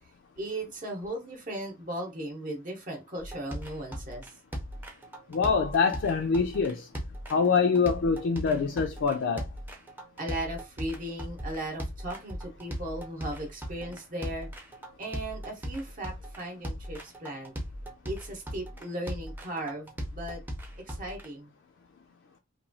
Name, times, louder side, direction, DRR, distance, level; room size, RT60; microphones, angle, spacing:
voice 1, 0.4-4.3 10.2-14.5 15.0-17.6 18.0-20.4 20.9-21.5, right 1 dB, 45° right, 0.7 m, -37 dB
sound 1, 3.2-21.2, equal, 10° right, 0.5 m, -38 dB
voice 2, 5.3-6.9 7.3-9.5, left 5 dB, 65° left, 0.3 m, -25 dB
2.9 x 2.2 x 2.6 m
head